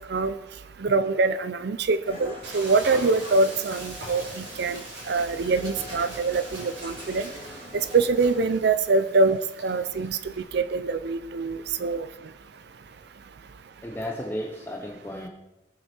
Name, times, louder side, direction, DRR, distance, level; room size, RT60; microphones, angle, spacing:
voice 1, 0.8-4.8 5.1-7.3 7.7-10.2 10.5-12.1, right 3 dB, 60° right, 13 dB, 0.5 m, -24 dB
sound 1, 2.0-8.5, left 1 dB, 30° right, 4.1 m, -44 dB
Frying (food), 2.4-10.4, right 2 dB, 75° right, 4.7 m, -42 dB
voice 2, 13.8-15.3, equal, 10° left, 0 dB, 0.9 m, -34 dB
21.0 x 7.6 x 4.4 m, 0.94 s
head